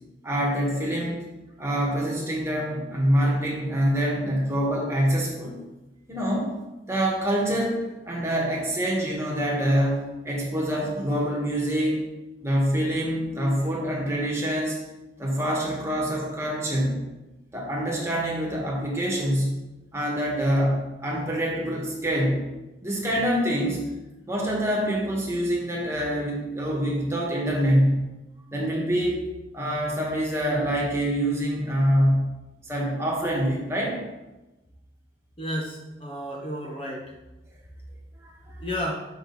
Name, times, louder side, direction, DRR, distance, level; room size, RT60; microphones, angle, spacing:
voice 1, 0.2-1.2 1.6-5.5 6.1-6.5 6.9-7.8 8.0-12.0 12.4-14.8 15.2-17.0 17.5-19.5 19.9-22.4 22.8-23.8 24.3-28.1 28.5-29.2 29.5-32.3 32.6-34.0 38.2-38.6, equal, 15° right, -3 dB, 1.6 m, -25 dB
voice 2, 35.4-37.1 38.6-39.1, equal, 30° left, -1 dB, 0.9 m, -32 dB
6.2 x 6.0 x 4.1 m, 1.0 s
head